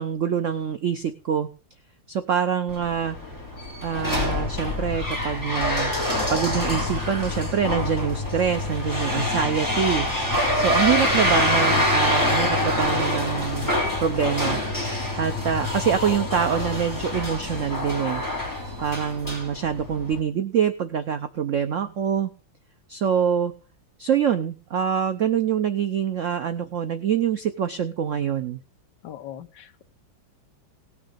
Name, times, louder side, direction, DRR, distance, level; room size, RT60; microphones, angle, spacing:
voice 1, 0.0-1.5 2.1-3.4 3.8-5.9 6.3-10.1 10.5-13.7 14.0-14.6 15.1-18.2 18.8-22.3 22.9-23.5 24.0-28.6, right 8 dB, 75° right, 10 dB, 0.7 m, -25 dB
sound 1, 2.7-20.2, left 1 dB, 10° left, 3.7 m, -26 dB
voice 2, 29.0-29.8, left 11 dB, 60° left, 9 dB, 1.5 m, -40 dB
18.0 x 6.6 x 5.1 m, 0.35 s
omnidirectional pair, 2.2 m